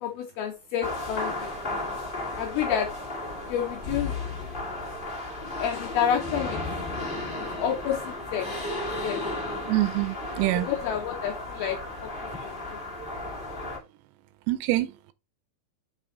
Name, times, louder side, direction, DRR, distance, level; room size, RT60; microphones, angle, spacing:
voice 1, 0.0-1.5 2.4-2.9 3.5-4.1 5.6-6.6 7.3-8.5 9.0-9.2 10.6-12.8, left 9 dB, 80° left, 2.2 m, -29 dB
sound 1, 0.8-13.8, left 2 dB, 25° left, 1.2 m, -34 dB
voice 2, 9.7-10.7 14.5-15.1, right 17 dB, 80° right, 2.7 m, -25 dB
5.7 x 5.2 x 4.0 m
omnidirectional pair, 5.1 m